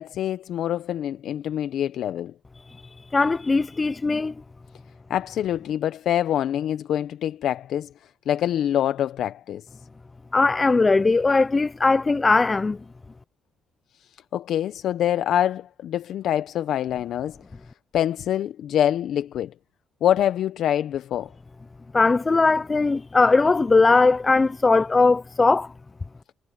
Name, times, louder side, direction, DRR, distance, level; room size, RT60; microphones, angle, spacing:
voice 1, 0.0-2.3 5.1-9.7 14.3-17.4 17.9-19.5 20.0-21.3, left 11 dB, 75° left, 0.6 m, -25 dB
voice 2, 3.1-4.3 10.3-12.8 21.9-25.7, left 3 dB, 25° left, 0.5 m, -19 dB
cardioid pair, 90°, 0 cm